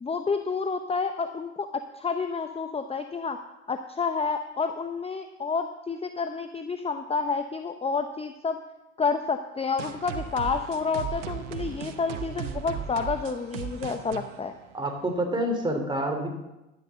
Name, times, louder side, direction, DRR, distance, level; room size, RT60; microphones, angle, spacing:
voice 1, 0.0-3.4 3.7-8.6 9.0-14.5, left 5 dB, 15° left, 7 dB, 0.9 m, -29 dB
sound 1, 9.8-15.2, right 8 dB, 70° right, 1.1 m, -37 dB
voice 2, 14.7-16.3, right 1 dB, 10° right, 2 dB, 3.3 m, -27 dB
12.0 x 9.1 x 5.8 m, 1.0 s
hypercardioid pair, 65°, 36 cm